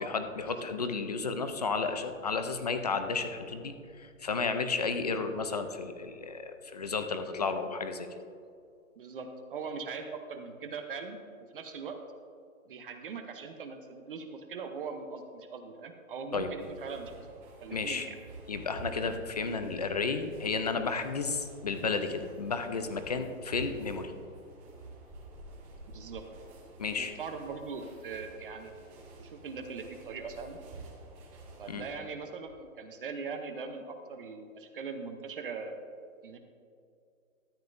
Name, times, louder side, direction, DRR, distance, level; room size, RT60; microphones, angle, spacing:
voice 1, 0.0-8.1 16.3-16.5 17.7-18.1 18.5-24.1 26.8-27.1 31.7-31.8, left 4 dB, 30° left, 8 dB, 0.4 m, -32 dB
voice 2, 9.0-11.2 11.5-12.0 12.7-17.3 17.6-18.2 25.9-26.2 27.0-28.7 29.2-30.6 31.6-35.8 36.2-36.4, right 5 dB, 40° right, 6 dB, 0.8 m, -41 dB
sound 1, 16.6-32.0, right 2 dB, 25° right, 2.0 m, -50 dB
13.0 x 9.6 x 2.6 m, 2.4 s
hypercardioid pair, 160°, 42 cm